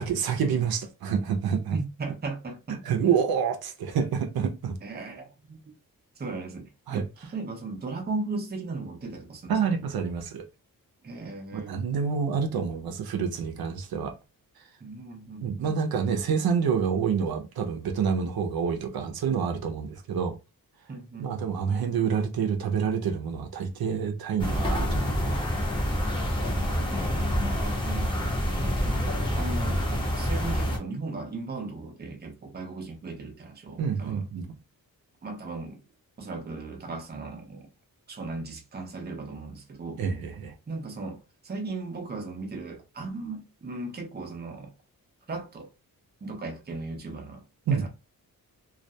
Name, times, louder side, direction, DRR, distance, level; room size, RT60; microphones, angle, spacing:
voice 1, 0.0-1.8 2.8-4.8 6.9-7.0 9.5-10.4 11.5-14.2 15.4-20.3 21.2-25.5 33.8-34.5 40.0-40.5 47.7-47.9, right 6 dB, 80° right, 0.5 m, -28 dB
voice 2, 1.7-2.8 4.8-5.6 6.2-7.1 7.3-9.8 11.0-11.8 14.8-15.8 20.9-21.4 26.4-28.1 28.6-34.3 35.2-35.8 36.2-37.7 38.1-40.0 40.7-44.7 45.3-45.7 46.2-47.4 47.7-47.9, right 3 dB, 25° right, 0.6 m, -37 dB
sound 1, 24.4-30.8, equal, 15° left, 0.7 m, -27 dB
2.3 x 2.1 x 2.6 m
wide cardioid pair, 135°, 36 cm